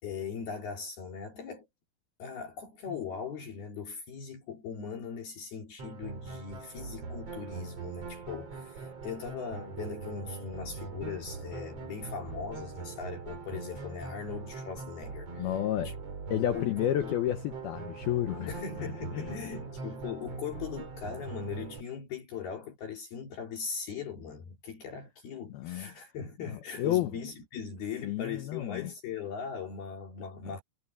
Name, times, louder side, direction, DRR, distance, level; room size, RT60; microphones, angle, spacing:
voice 1, 0.0-1.7 2.2-15.5 15.8-15.9 16.4-17.1 18.5-30.6, left 6 dB, 55° left, 4.6 m, -40 dB
sound 1, 5.8-21.8, right 4 dB, 35° right, 4.0 m, -42 dB
voice 2, 15.4-15.9 16.3-18.5 18.8-19.4 25.5-25.9 26.4-27.1 28.0-28.9, left 12 dB, 85° left, 2.1 m, -31 dB
omnidirectional pair, 5.9 m